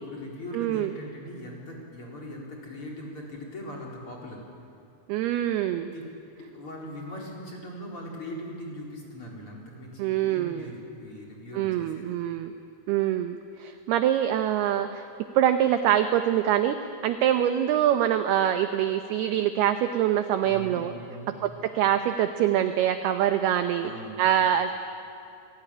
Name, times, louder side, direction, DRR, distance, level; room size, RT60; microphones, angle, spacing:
voice 1, 0.0-4.5 5.9-6.1 6.4-12.1 20.4-21.3 23.8-24.2, equal, 30° left, -2 dB, 4.4 m, -40 dB
voice 2, 0.5-0.9 5.1-5.9 10.0-10.7 11.5-12.5 12.9-15.0 15.3-16.8 17.0-20.9 21.4-23.9 24.2-24.7, right 11 dB, 80° right, 8 dB, 2.3 m, -24 dB
27.0 x 19.0 x 10.0 m, 2.5 s
omnidirectional pair, 5.6 m